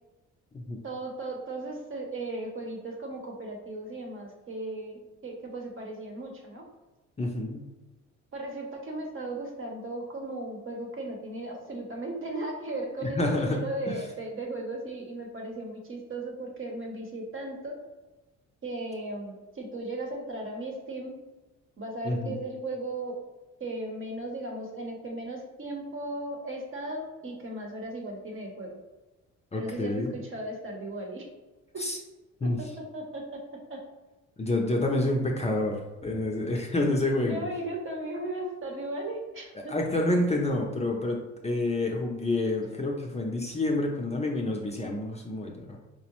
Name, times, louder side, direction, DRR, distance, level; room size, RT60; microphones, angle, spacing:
voice 1, 0.8-6.6 8.3-17.8 18.6-21.1 21.8-23.1 23.6-28.8 29.5-31.3 31.7-31.8 32.4-33.4 33.7-33.8 37.2-39.7, right 2 dB, 45° right, 1 dB, 0.9 m, -36 dB
voice 2, 7.2-7.7 13.2-13.6 13.9-14.0 22.0-22.3 29.5-30.1 31.8-32.0 32.4-32.6 34.4-37.5 39.7-41.2 41.4-45.8, left 2 dB, 20° left, 0 dB, 0.5 m, -28 dB
4.6 x 2.0 x 2.9 m, 1.1 s
cardioid pair, 90°, 30 cm